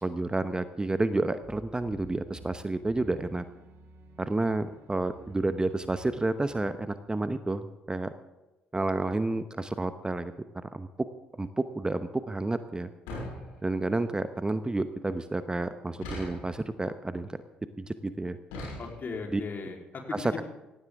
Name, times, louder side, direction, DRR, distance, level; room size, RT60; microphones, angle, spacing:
voice 1, 0.0-3.4 4.2-8.1 8.7-10.3 10.7-10.9 11.4-12.9 13.6-17.4 17.8-18.4 19.3-19.4, right 2 dB, 15° right, 11 dB, 1.0 m, -30 dB
sound 1, 1.4-7.1, right 1 dB, 60° right, 2.2 m, -52 dB
sound 2, 13.1-14.0 16.0-16.7 18.5-19.3, left 1 dB, 75° left, 6.3 m, -40 dB
voice 2, 18.8-20.4, left 4 dB, 45° left, 1 dB, 3.7 m, -37 dB
18.0 x 16.0 x 3.7 m, 1.1 s
figure-of-eight pair, 45°, 5 cm